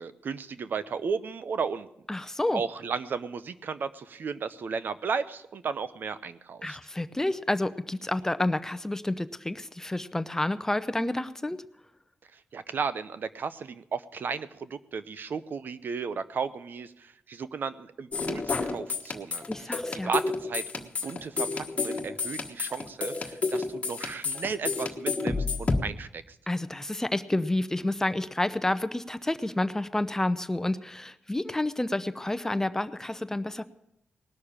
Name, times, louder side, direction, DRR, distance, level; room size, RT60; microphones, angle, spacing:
voice 1, 0.0-1.9 2.5-6.8 12.5-19.4 20.0-26.2, right 5 dB, 60° right, 14 dB, 0.7 m, -34 dB
voice 2, 2.1-2.6 6.6-11.6 19.5-20.1 26.5-33.6, left 1 dB, 15° left, 12 dB, 0.7 m, -29 dB
sound 1, 18.1-25.8, left 4 dB, 35° left, 1.4 m, -30 dB
19.5 x 6.5 x 8.7 m, 0.80 s
cardioid pair, 95°, 4 cm